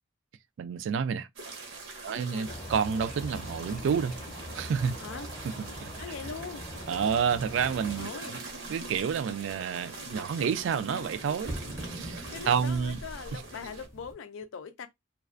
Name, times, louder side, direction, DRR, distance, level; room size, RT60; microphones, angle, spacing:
voice 1, 0.6-1.3 2.0-4.2 4.5-4.9 5.8-5.9 6.9-8.3 8.7-11.5 11.9-13.0 13.3-13.4, right 6 dB, 70° right, 0.3 m, -29 dB
sound 1, 1.4-13.9, right 3 dB, 85° right, 0.8 m, -43 dB
voice 2, 2.0-2.6 5.0-5.3 6.0-6.6 8.0-8.4 12.3-14.9, left 5 dB, 90° left, 0.4 m, -41 dB
sound 2, 2.4-8.1, equal, 25° left, 0.7 m, -42 dB
sound 3, 9.7-14.1, right 1 dB, 15° right, 0.5 m, -44 dB
2.3 x 2.2 x 2.4 m
head